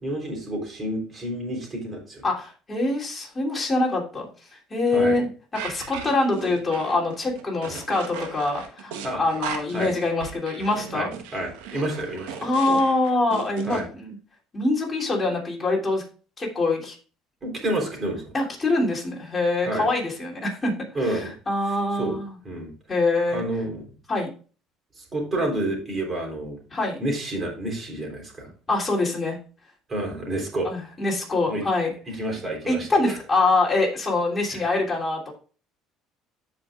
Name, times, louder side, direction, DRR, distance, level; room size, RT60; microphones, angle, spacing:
voice 1, 0.0-2.3 4.9-5.2 7.7-7.8 9.0-9.2 9.7-9.9 10.9-12.5 13.7-13.9 17.4-18.3 19.6-19.9 20.9-21.3 21.9-22.2 22.4-22.7 23.3-23.9 25.0-26.6 27.0-28.5 29.9-30.7 31.5-31.6 32.1-33.1 34.5-34.7, right 1 dB, 30° right, 0 dB, 3.6 m, -29 dB
voice 2, 2.2-5.3 5.6-11.1 12.4-14.2 14.5-16.0 16.4-16.9 18.3-20.7 21.0-22.3 22.9-23.4 24.1-24.3 26.7-27.0 28.7-29.4 30.6-31.9 32.7-35.3, left 2 dB, 20° left, -2 dB, 3.1 m, -24 dB
sound 1, 5.5-13.8, right 7 dB, 90° right, 1.3 m, -36 dB
13.5 x 5.2 x 2.4 m, 0.38 s
supercardioid pair, 105°, 0 cm